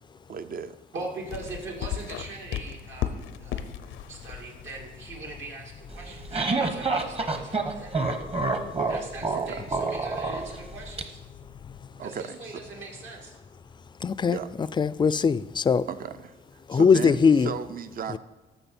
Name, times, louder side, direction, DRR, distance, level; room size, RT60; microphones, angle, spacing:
voice 1, 0.3-0.8 9.3-9.7 12.0-12.6 14.3-14.5 15.9-18.2, right 7 dB, 45° right, 12 dB, 0.6 m, -36 dB
voice 2, 0.9-3.8 4.1-8.0 8.9-11.2 12.0-13.4, right 3 dB, 75° right, -1 dB, 2.5 m, -41 dB
sound 1, 1.3-11.9, left 10 dB, 80° left, 0.6 m, -39 dB
sound 2, 5.9-11.0, right 3 dB, 30° right, 1.0 m, -28 dB
voice 3, 14.0-14.4 14.8-15.8 16.7-17.5 18.1-18.2, left 5 dB, 25° left, 17 dB, 0.3 m, -21 dB
13.5 x 5.6 x 4.4 m, 1.2 s
cardioid pair, 90°, 20 cm